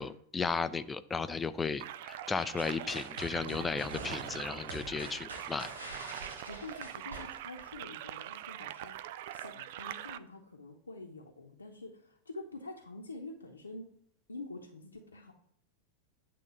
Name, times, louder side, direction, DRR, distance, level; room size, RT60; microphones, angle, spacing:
voice 1, 0.0-5.7, left 4 dB, 15° left, 13 dB, 0.4 m, -35 dB
sound 1, 1.8-10.2, right 12 dB, 50° right, 0.4 m, -43 dB
sound 2, 2.6-7.8, right 2 dB, 75° right, 1.6 m, -45 dB
voice 2, 6.5-9.0 9.3-13.9 14.3-15.3, left 2 dB, 75° left, -1 dB, 0.8 m, -47 dB
8.5 x 3.8 x 6.7 m, 0.67 s
figure-of-eight pair, 90°, 0 cm